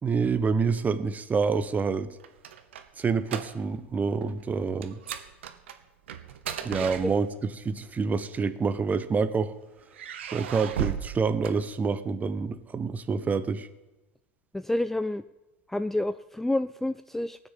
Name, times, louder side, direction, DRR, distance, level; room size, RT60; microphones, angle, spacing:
voice 1, 0.0-2.1 3.0-5.0 6.6-9.5 10.3-13.7, right 5 dB, 25° right, 13 dB, 0.9 m, -27 dB
sound 1, 2.0-3.9 4.2-4.4 4.8-7.6 8.5-9.3 9.9-12.2, right 9 dB, 80° right, 1.0 m, -37 dB
voice 2, 14.5-15.2 15.7-17.4, left 1 dB, 5° left, 13 dB, 0.3 m, -28 dB
18.0 x 6.4 x 7.4 m, 1.1 s
hypercardioid pair, 85°, 6 cm